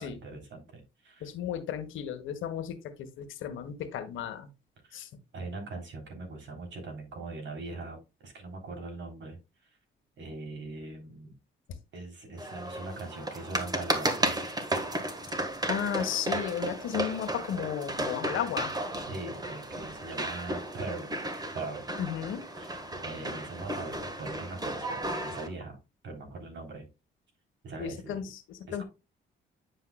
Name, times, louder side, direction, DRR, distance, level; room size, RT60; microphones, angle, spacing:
voice 1, 0.0-1.3 4.8-5.0 5.3-9.4 10.2-11.3 11.9-14.5 19.0-21.2 21.5-21.9 22.6-22.8 23.0-25.8 26.0-26.9 27.6-28.2 28.7-28.8, right 3 dB, 65° right, 3 dB, 3.5 m, -41 dB
voice 2, 1.2-4.5 4.9-5.1 11.7-11.8 15.6-18.7 22.0-22.4 27.8-28.8, left 9 dB, 85° left, 8 dB, 1.4 m, -34 dB
sound 1, 12.4-25.5, right 1 dB, 20° right, 1.5 m, -34 dB
9.6 x 5.7 x 2.3 m, 0.27 s
cardioid pair, 90°, 20 cm